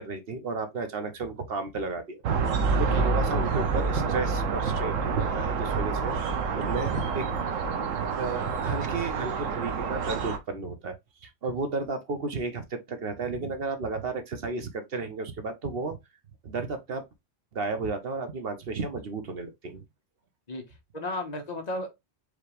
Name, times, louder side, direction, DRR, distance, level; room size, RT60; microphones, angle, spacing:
voice 1, 0.0-2.2 2.8-11.0 11.2-16.0 16.4-17.0 17.5-19.8, right 3 dB, 55° right, 1.0 m, -33 dB
sound 1, 2.2-10.4, right 5 dB, 90° right, 1.1 m, -28 dB
voice 2, 20.5-21.9, left 1 dB, 35° left, 1.2 m, -35 dB
5.0 x 3.0 x 3.2 m
omnidirectional pair, 1.3 m